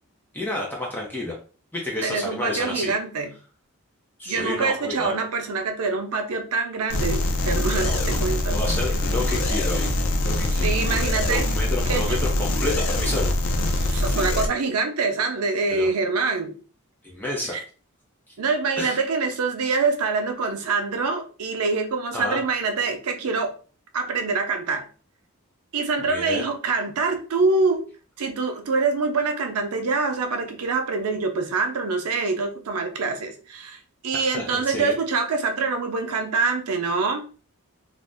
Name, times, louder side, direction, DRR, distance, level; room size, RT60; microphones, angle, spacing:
voice 1, 0.3-1.3 1.7-2.9 4.2-5.1 7.8-8.2 8.5-9.9 10.2-10.8 11.3-13.3 15.8-15.9 17.0-17.6 18.8-19.0 22.1-22.4 26.1-26.4 34.3-34.9, left 2 dB, 10° left, 0.5 m, -30 dB
voice 2, 2.0-3.3 4.3-8.6 10.5-11.5 11.9-12.2 13.8-16.5 17.5-17.6 18.4-23.5 23.9-24.9 25.7-27.8 28.2-37.3, right 4 dB, 85° right, 0.5 m, -25 dB
sound 1, 6.9-14.5, left 1 dB, 65° left, 0.4 m, -23 dB
2.6 x 2.0 x 3.4 m
head